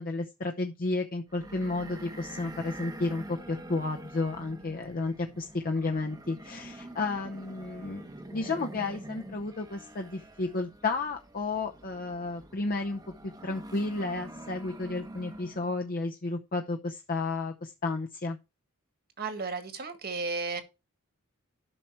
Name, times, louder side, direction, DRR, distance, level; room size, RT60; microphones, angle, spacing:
voice 1, 0.0-18.4, left 3 dB, 40° left, 0.8 m, -32 dB
sound 1, 1.3-15.8, right 1 dB, 15° right, 0.9 m, -46 dB
voice 2, 19.2-20.6, right 4 dB, 45° right, 1.8 m, -33 dB
12.0 x 5.8 x 4.5 m
head